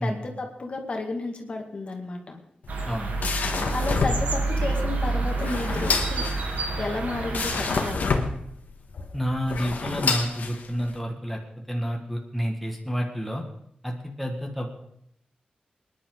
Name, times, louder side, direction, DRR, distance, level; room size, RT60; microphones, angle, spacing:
voice 1, 0.0-2.4 3.7-6.3 6.8-8.2, left 3 dB, 45° left, 2 dB, 2.2 m, -32 dB
sound 1, 2.6-11.0, left 4 dB, 75° left, 1.6 m, -29 dB
sound 2, 2.7-7.9, right 2 dB, 90° right, 3.1 m, -28 dB
voice 2, 9.1-11.4 11.7-13.4 13.8-14.7, equal, ahead, 0 dB, 1.9 m, -29 dB
25.5 x 10.5 x 4.0 m, 0.71 s
wide cardioid pair, 150°, 3 cm